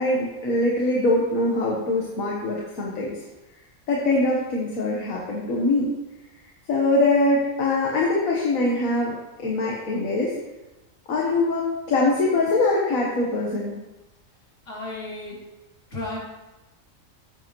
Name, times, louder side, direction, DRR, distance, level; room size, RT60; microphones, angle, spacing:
voice 1, 0.0-3.2 3.9-5.9 6.7-10.3 11.1-13.7, left 2 dB, 80° left, -3 dB, 1.7 m, -23 dB
voice 2, 14.7-15.4 15.9-16.2, left 2 dB, 65° left, -5 dB, 3.2 m, -33 dB
15.5 x 7.6 x 3.1 m, 1.1 s
omnidirectional pair, 1.4 m